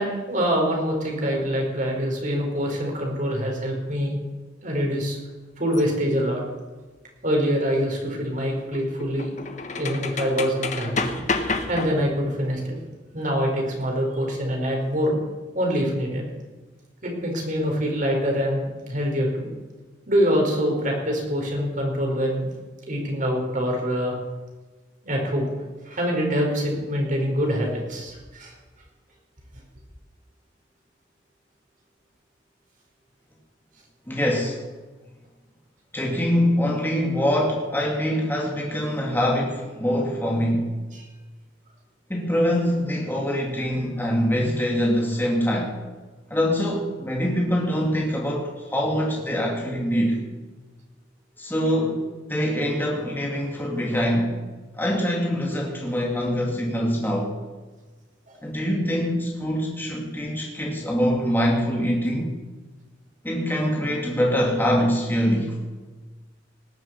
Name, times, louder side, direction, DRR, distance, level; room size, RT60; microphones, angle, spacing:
voice 1, 0.0-4.1 4.6-5.2 5.6-6.4 7.2-9.3 9.7-11.1 11.7-12.8 13.1-15.1 15.5-16.2 17.0-19.5 20.1-22.4 22.9-24.1 25.0-25.5 25.8-28.5 40.9-41.0 58.3-58.4, equal, 45° right, 0 dB, 4.7 m, -25 dB
sound 1, 5.7-5.8 8.2-12.3, left 3 dB, 40° left, 1.3 m, -30 dB
voice 2, 34.1-34.6 35.9-40.7 42.1-45.8 46.3-50.2 51.4-52.0 52.3-54.4 54.7-57.3 58.4-62.4 63.2-65.6, equal, 10° left, -1 dB, 2.3 m, -24 dB
19.0 x 7.8 x 8.4 m, 1.3 s
head